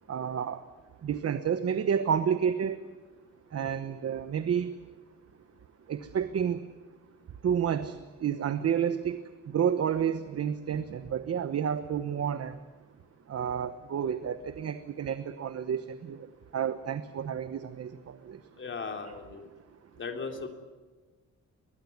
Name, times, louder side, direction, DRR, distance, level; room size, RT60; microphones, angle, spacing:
voice 1, 0.1-0.6 1.0-2.8 3.5-4.8 5.9-6.6 7.4-12.6 13.3-16.3 16.5-18.4 19.0-19.2, right 8 dB, 55° right, 11 dB, 1.1 m, -30 dB
voice 2, 18.6-19.5 20.0-20.5, left 4 dB, 40° left, 4 dB, 3.2 m, -37 dB
23.0 x 20.5 x 9.5 m, 1.4 s
wide cardioid pair, 170°, 30 cm